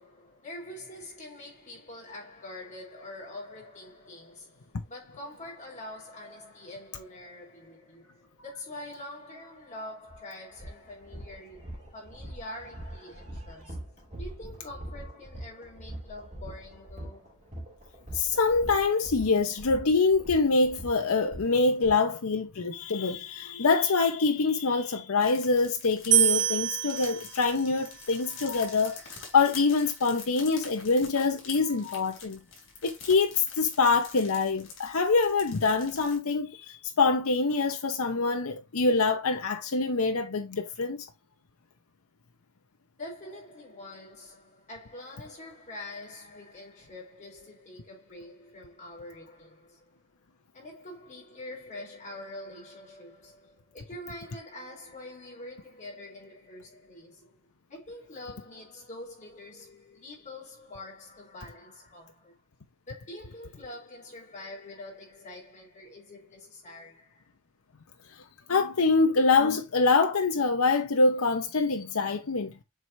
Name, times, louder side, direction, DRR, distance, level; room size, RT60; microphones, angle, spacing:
voice 1, 0.0-13.8 14.2-17.5 43.0-50.0 50.5-57.4 57.7-62.4 62.9-67.2, left 1 dB, 35° left, 3.8 m, -45 dB
sound 1, 10.1-10.2 10.5-21.9, right 1 dB, 35° right, 2.5 m, -42 dB
voice 2, 18.1-29.0 29.3-32.4 32.8-41.0 68.5-72.5, left 4 dB, 85° left, 0.8 m, -25 dB
sound 2, 25.2-36.2, left 5 dB, 65° left, 3.3 m, -46 dB
sound 3, 26.1-29.3, right 10 dB, 55° right, 1.0 m, -28 dB
7.6 x 4.6 x 2.7 m
head